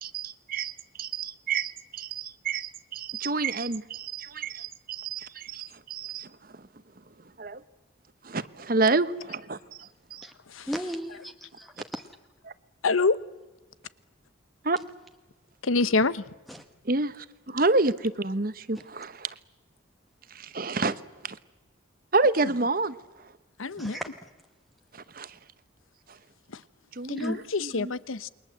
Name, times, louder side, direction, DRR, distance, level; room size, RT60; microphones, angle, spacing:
voice 1, 0.0-6.7 7.4-7.6 8.2-10.3 12.4-12.5 14.6-14.8 16.8-19.3 20.3-20.9 22.1-23.3 24.9-25.4 26.1-26.2 26.9-27.9, right 3 dB, 45° right, 0.9 m, -29 dB
voice 2, 10.7-12.0 16.5-16.6 23.8-24.1 27.2-27.4, equal, ahead, 1.0 m, -35 dB
voice 3, 12.8-13.2 15.6-16.2 23.6-24.0 26.5-26.6 27.1-28.3, left 3 dB, 90° left, 0.9 m, -26 dB
28.5 x 22.0 x 7.8 m
head